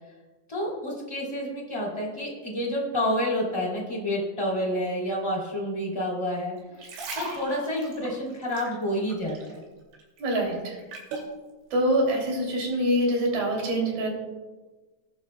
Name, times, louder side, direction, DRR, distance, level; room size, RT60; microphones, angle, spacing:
voice 1, 0.5-6.5 7.1-9.6, equal, 10° left, -3 dB, 2.1 m, -29 dB
sound 1, 6.6-9.6 9.9-11.3 11.9-12.1, right 2 dB, 75° right, 4.7 m, -38 dB
voice 2, 10.2-10.8 11.7-14.1, equal, 55° right, -1 dB, 4.5 m, -25 dB
20.5 x 11.5 x 2.3 m, 1.2 s
omnidirectional pair, 5.4 m